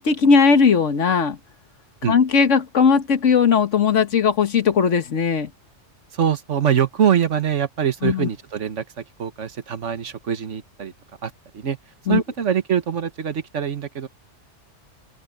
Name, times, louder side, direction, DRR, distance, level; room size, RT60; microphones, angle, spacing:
voice 1, 0.0-1.4 2.1-5.5 8.0-8.3 12.1-12.2, left 6 dB, 90° left, 1.7 m, -18 dB
voice 2, 6.1-10.9 11.2-11.8 12.1-14.1, right 8 dB, 80° right, 1.6 m, -23 dB
open air
omnidirectional pair, 1.2 m